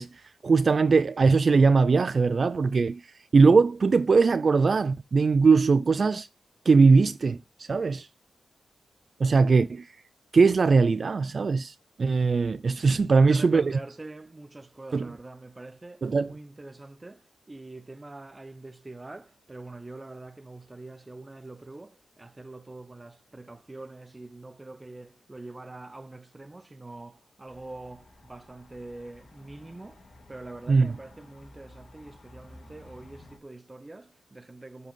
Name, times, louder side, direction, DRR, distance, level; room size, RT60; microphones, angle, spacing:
voice 1, 0.0-6.3 6.7-8.1 9.2-9.9 10.3-13.8 14.9-15.1 16.0-16.3 30.7-30.9, right 4 dB, 50° right, 0.4 m, -21 dB
voice 2, 13.1-30.0 30.3-34.9, right 2 dB, 25° right, 0.7 m, -44 dB
sound 1, 27.4-33.4, left 1 dB, 55° left, 3.0 m, -52 dB
7.5 x 3.9 x 5.3 m
cardioid pair, 75°, 0 cm